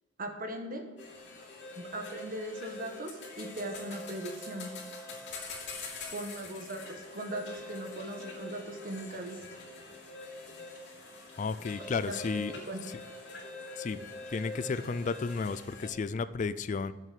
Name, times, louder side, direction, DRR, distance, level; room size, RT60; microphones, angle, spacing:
voice 1, 0.2-0.9 1.7-4.7 6.1-9.4 12.1-12.9, right 1 dB, 45° right, 5 dB, 1.4 m, -39 dB
sound 1, 1.0-15.9, left 3 dB, 65° left, 3.0 m, -44 dB
voice 2, 11.4-12.5 13.8-14.0 14.3-16.9, left 4 dB, 40° left, 15 dB, 0.4 m, -33 dB
7.7 x 7.7 x 7.6 m, 1.3 s
head